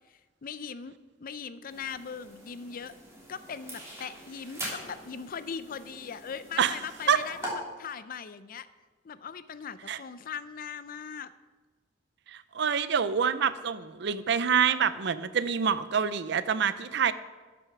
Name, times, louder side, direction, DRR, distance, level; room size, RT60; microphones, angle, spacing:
voice 1, 0.1-0.9 1.2-2.9 3.3-8.7 9.0-11.3, left 6 dB, 50° left, 14 dB, 0.5 m, -40 dB
sound 1, 1.7-7.5, right 1 dB, 15° right, 3.3 m, -44 dB
voice 2, 12.3-17.1, right 7 dB, 65° right, 14 dB, 0.5 m, -26 dB
12.0 x 6.3 x 5.9 m, 1.3 s
head